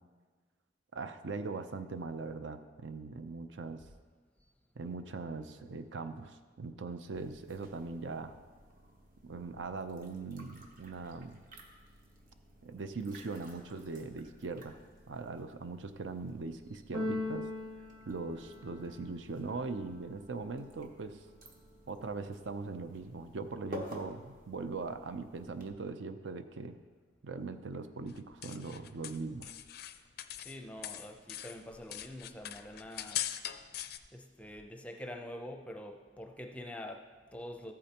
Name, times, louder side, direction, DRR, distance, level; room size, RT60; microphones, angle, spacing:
voice 1, 0.9-3.8 4.8-8.4 9.2-11.4 12.6-14.8 15.1-17.4 18.1-21.2 21.9-26.8 27.2-29.5, right 3 dB, 75° right, 9 dB, 0.6 m, -40 dB
sound 1, 7.1-25.7, equal, 45° right, 1.0 m, -53 dB
Keyboard (musical), 16.9-19.0, left 2 dB, 25° right, 0.9 m, -38 dB
sound 2, 28.1-30.6 30.8-34.0, left 12 dB, 55° left, 0.4 m, -41 dB
voice 2, 30.4-33.3 34.1-37.7, left 1 dB, 5° left, 4 dB, 0.6 m, -45 dB
13.5 x 8.5 x 2.9 m, 1.5 s
head